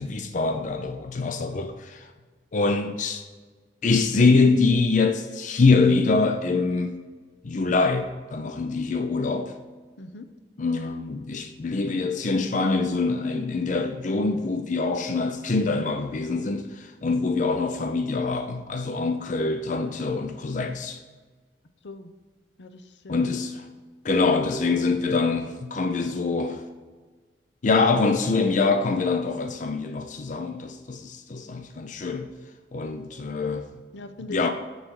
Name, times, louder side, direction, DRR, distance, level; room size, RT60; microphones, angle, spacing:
voice 1, 0.0-2.1 2.5-3.2 3.8-7.0 7.4-9.5 10.6-21.0 23.1-23.6 24.0-26.6 27.6-32.3 32.7-33.7 34.3-34.5, left 3 dB, 45° left, 0.5 m, -24 dB
voice 2, 10.0-10.3 21.8-22.1 22.6-23.4 33.9-34.5, left 3 dB, 85° left, 0.7 m, -40 dB
9.2 x 4.0 x 6.3 m
head